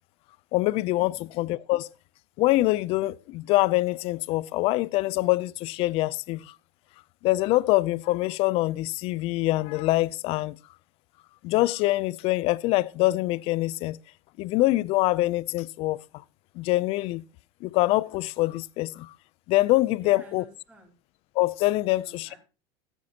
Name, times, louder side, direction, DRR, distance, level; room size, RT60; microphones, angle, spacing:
voice 1, 0.5-1.9 2.4-6.5 7.2-10.5 11.4-14.0 14.4-16.0 16.6-17.2 17.6-19.1 19.5-20.4 21.4-22.3, left 18 dB, 45° left, 0.4 m, -24 dB
voice 2, 20.0-21.0 21.8-22.4, right 1 dB, 10° right, 3.7 m, -50 dB
14.0 x 9.2 x 2.8 m
supercardioid pair, 140°, 13 cm